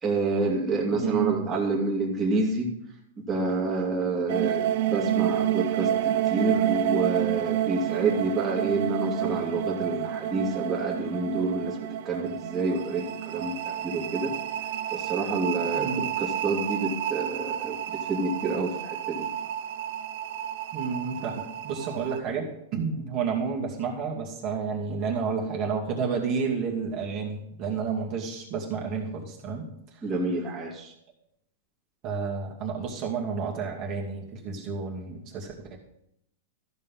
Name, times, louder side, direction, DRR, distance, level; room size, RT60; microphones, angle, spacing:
voice 1, 0.0-2.7 3.2-14.3 14.9-19.3 30.0-30.9, right 3 dB, 20° right, -3 dB, 2.4 m, -28 dB
voice 2, 0.9-1.5 15.8-16.1 20.7-30.0 32.0-35.8, right 5 dB, 40° right, -2 dB, 2.4 m, -31 dB
sound 1, 4.3-22.2, right 12 dB, 55° right, 0.6 m, -30 dB
13.5 x 5.6 x 5.6 m, 0.77 s
hypercardioid pair, 135°, 0 cm